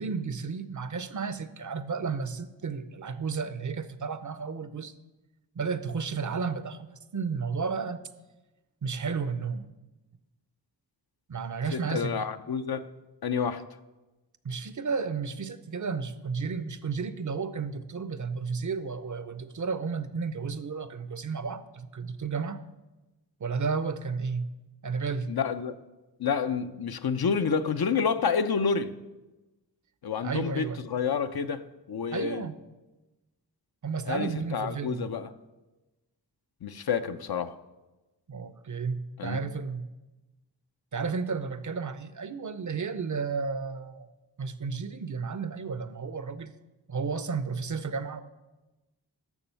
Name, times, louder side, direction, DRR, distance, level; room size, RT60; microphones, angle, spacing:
voice 1, 0.0-4.9 5.6-8.0 8.8-9.7 11.3-12.2 13.6-13.7 14.4-22.6 23.4-24.5 24.8-25.3 30.2-30.8 32.1-32.5 33.8-35.1 38.3-39.9 40.9-44.1 44.4-46.6 46.9-48.2, right 5 dB, 45° right, 0.6 m, -32 dB
voice 2, 11.7-12.9 13.2-13.6 25.3-25.8 26.2-28.9 30.0-31.6 31.9-32.4 34.1-35.3 36.6-37.6 39.2-39.4, left 6 dB, 60° left, 0.6 m, -29 dB
7.2 x 6.2 x 6.9 m
cardioid pair, 40°, 42 cm